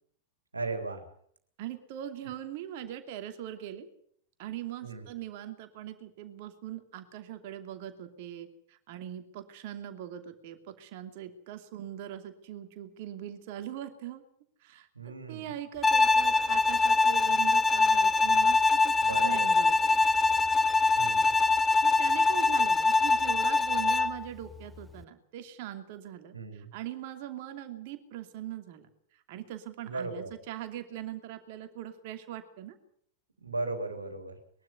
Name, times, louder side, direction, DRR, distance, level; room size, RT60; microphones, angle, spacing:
voice 1, 0.5-1.0 4.8-5.1 14.9-15.5 19.0-19.5 21.0-21.4 26.3-26.7 29.8-30.3 33.4-34.4, right 3 dB, 80° right, 6 dB, 3.3 m, -36 dB
voice 2, 1.6-3.9 4.4-14.2 14.6-20.0 21.8-28.9 29.1-32.8, right 11 dB, 50° right, 7 dB, 2.7 m, -41 dB
Bowed string instrument, 15.8-24.2, left 3 dB, 10° left, 0.9 m, -23 dB
22.0 x 12.5 x 9.6 m, 0.65 s
figure-of-eight pair, 90°, 0 cm